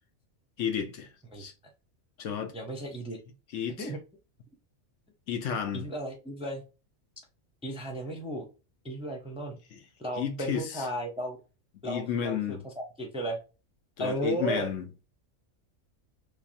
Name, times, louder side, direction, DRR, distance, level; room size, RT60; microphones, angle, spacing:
voice 1, 0.6-1.1 1.4-1.5 2.2-2.5 3.5-3.9 5.3-5.9 9.7-9.8 10.2-10.9 11.8-12.6 14.0-14.9, left 8 dB, 70° left, 1.0 m, -32 dB
voice 2, 2.5-3.2 3.8-4.0 5.7-6.6 7.6-8.4 8.8-9.6 10.0-11.4 11.8-13.4 14.0-14.7, right 1 dB, 5° right, 0.6 m, -34 dB
3.3 x 3.3 x 2.6 m
omnidirectional pair, 1.4 m